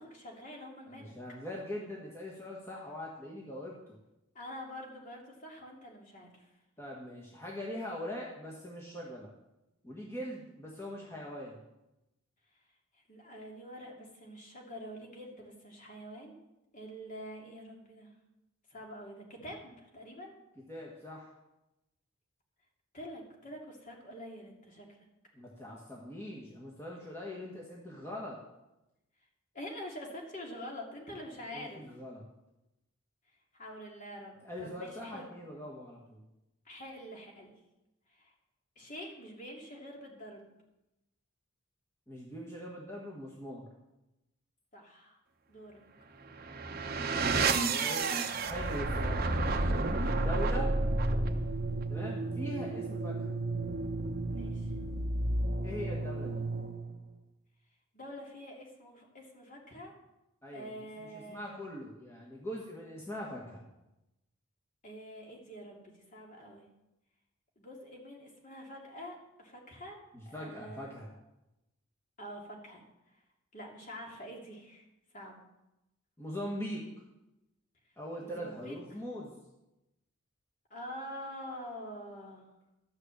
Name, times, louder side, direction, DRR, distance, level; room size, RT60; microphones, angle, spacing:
voice 1, 0.0-1.1 4.3-6.5 13.1-16.3 16.7-18.1 18.7-20.3 22.9-24.9 29.5-31.8 33.5-35.3 36.6-37.6 38.1-38.3 38.8-40.5 44.7-45.2 45.5-45.8 50.2-50.4 54.3-54.7 57.9-59.9 60.5-61.5 64.8-66.7 67.6-70.0 70.3-70.9 72.2-72.8 73.5-74.8 75.1-75.4 78.2-78.8 80.7-82.5, equal, 40° left, 0 dB, 2.6 m, -46 dB
voice 2, 0.9-4.0 6.8-9.3 9.8-11.6 20.7-21.3 25.3-28.4 31.5-32.2 34.4-36.2 42.1-43.6 47.4-49.4 50.2-50.7 51.9-53.3 55.6-56.4 60.4-60.7 61.0-63.6 70.1-71.1 76.2-76.8 78.0-79.3, left 1 dB, 15° left, -4 dB, 1.6 m, -42 dB
sound 1, 46.3-57.0, right 2 dB, 45° right, 0.9 m, -31 dB
12.0 x 6.5 x 7.6 m, 0.93 s
head